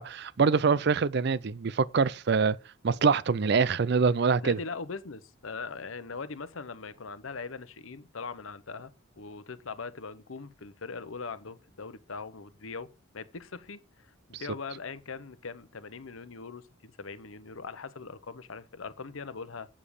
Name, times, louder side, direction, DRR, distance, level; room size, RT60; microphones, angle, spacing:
voice 1, 0.0-2.6 2.8-4.6 14.3-14.4, right 5 dB, 50° right, 0.4 m, -25 dB
voice 2, 4.4-12.9 13.1-19.7, left 4 dB, 75° left, 0.9 m, -41 dB
8.7 x 7.3 x 4.9 m
head